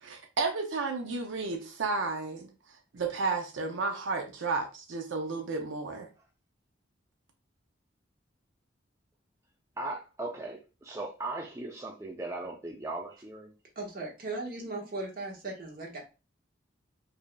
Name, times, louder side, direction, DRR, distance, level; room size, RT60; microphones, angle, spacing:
voice 1, 0.0-2.5 2.9-6.1, right 4 dB, 75° right, 0.5 m, -32 dB
voice 2, 9.8-13.5, right 2 dB, 15° right, 0.4 m, -38 dB
voice 3, 13.7-16.0, right 2 dB, 45° right, 1.2 m, -37 dB
4.9 x 2.6 x 2.2 m
head